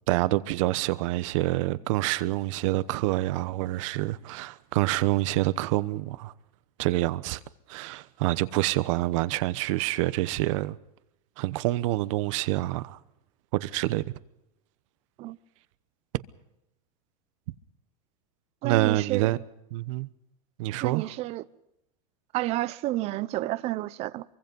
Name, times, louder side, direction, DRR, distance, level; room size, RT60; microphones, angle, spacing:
voice 1, 0.1-6.3 6.8-7.4 7.7-10.8 11.4-13.0 13.5-14.0 18.6-19.4 19.7-20.1 20.6-21.1, right 17 dB, 55° right, 1.0 m, -27 dB
voice 2, 18.6-19.3 20.8-21.4 22.3-24.2, right 16 dB, 35° right, 0.8 m, -30 dB
24.0 x 24.0 x 5.4 m
supercardioid pair, 160°, 19 cm